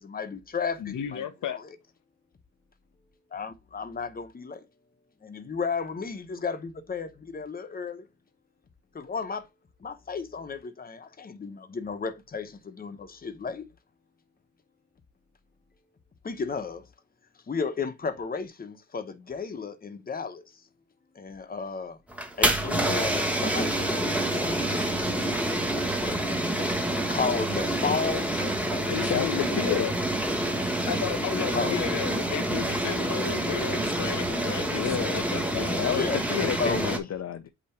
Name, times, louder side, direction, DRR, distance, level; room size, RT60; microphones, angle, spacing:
voice 1, 0.0-1.7 3.3-4.6 5.2-8.1 8.9-9.4 9.8-13.6 16.2-16.8 17.5-20.4 21.2-22.0 22.4-25.1 25.8-26.1 26.6-26.7 27.1-28.9 31.5-31.8 35.9-36.2 36.6-36.8, left 5 dB, 30° left, 0.9 m, -33 dB
voice 2, 0.8-1.6 27.9-28.0 28.9-29.9 30.3-34.8 35.1-35.7, left 9 dB, 90° left, 0.9 m, -33 dB
sound 1, 22.1-37.0, right 1 dB, 5° right, 1.1 m, -27 dB
voice 3, 29.1-29.9 34.7-37.5, left 9 dB, 60° left, 0.6 m, -30 dB
8.6 x 3.0 x 4.4 m
wide cardioid pair, 165°, 30 cm